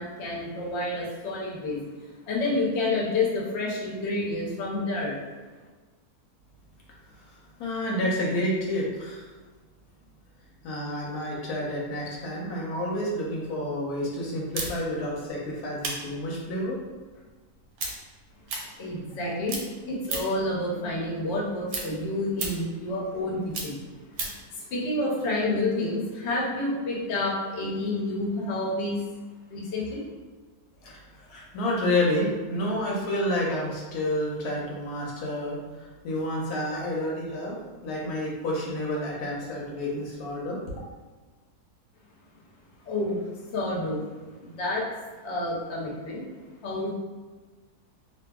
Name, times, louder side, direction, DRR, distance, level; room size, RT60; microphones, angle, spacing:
voice 1, 0.0-1.8 2.3-5.2 18.8-19.6 19.9-23.8 24.2-29.0 29.5-30.0 42.8-43.2 43.5-44.1 44.4-44.9 45.2-46.2 46.6-46.9, left 2 dB, 55° left, -4 dB, 0.8 m, -29 dB
voice 2, 7.6-9.3 10.6-16.8 30.8-40.6, left 1 dB, 80° left, -3 dB, 1.1 m, -29 dB
sound 1, 14.5-19.2 19.5-20.5 20.9-24.5, right 3 dB, 75° right, 1.0 m, -35 dB
2.6 x 2.5 x 2.3 m, 1.3 s
omnidirectional pair, 1.7 m